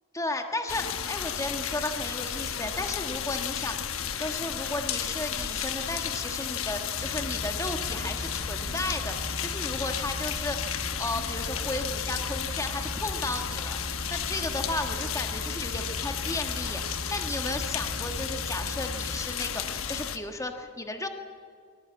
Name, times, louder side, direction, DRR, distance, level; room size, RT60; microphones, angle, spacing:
voice 1, 0.1-9.1 9.4-13.8 14.1-21.1, left 2 dB, 15° left, 5 dB, 1.4 m, -34 dB
sound 1, 0.7-20.2, left 8 dB, 70° left, 1.1 m, -33 dB
sound 2, 7.0-19.2, equal, 35° right, 7.3 m, -38 dB
21.5 x 18.5 x 8.5 m, 2.1 s
head